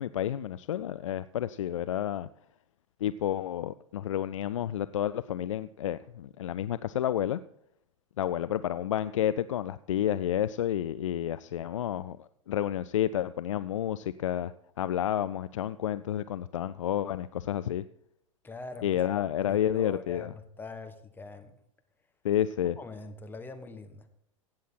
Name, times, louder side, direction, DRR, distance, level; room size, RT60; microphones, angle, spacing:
voice 1, 0.0-2.3 3.0-7.4 8.2-12.2 12.5-17.8 18.8-20.3 22.2-22.8, left 11 dB, 70° left, 15 dB, 0.4 m, -30 dB
voice 2, 18.4-19.0 19.4-21.6 22.8-24.1, left 3 dB, 10° left, 7 dB, 1.3 m, -43 dB
16.0 x 7.4 x 4.4 m, 0.74 s
figure-of-eight pair, 90°, 17 cm